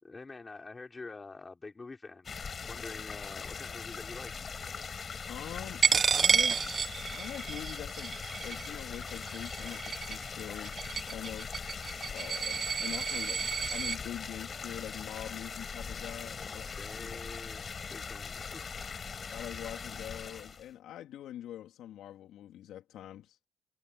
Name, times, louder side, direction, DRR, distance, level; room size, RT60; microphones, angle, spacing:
voice 1, 0.0-4.4 16.2-18.6, left 3 dB, 25° left, 5.3 m, -47 dB
sound 1, 2.2-20.7, left 5 dB, 40° left, 5.5 m, -41 dB
voice 2, 5.3-5.8 6.1-6.7 7.1-10.8 11.1-11.6 12.1-16.7 17.0-17.2 19.3-23.4, left 12 dB, 85° left, 3.4 m, -44 dB
Coin (dropping), 5.8-14.0, right 6 dB, 45° right, 1.0 m, -31 dB
cardioid pair, 90°, 0 cm